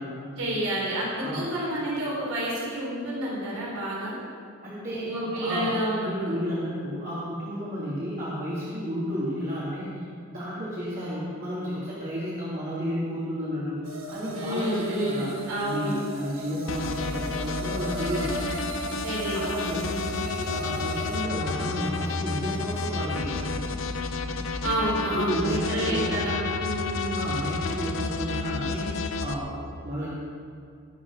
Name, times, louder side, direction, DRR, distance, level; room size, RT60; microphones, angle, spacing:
voice 1, 0.4-4.2 5.1-6.4 14.3-15.9 19.0-19.4 19.7-20.2 24.6-27.2, right 1 dB, 85° right, -5 dB, 3.9 m, -29 dB
voice 2, 4.6-5.1 5.4-5.7 6.0-10.0 10.3-15.3 15.6-18.3 19.3-23.7 25.1-26.2 27.1-30.1, equal, 40° right, -9 dB, 3.2 m, -32 dB
sound 1, 13.8-21.2, right 1 dB, 70° right, 1.7 m, -37 dB
sound 2, 16.7-29.3, left 4 dB, 65° left, 0.8 m, -31 dB
20.0 x 7.4 x 5.7 m, 2.4 s
head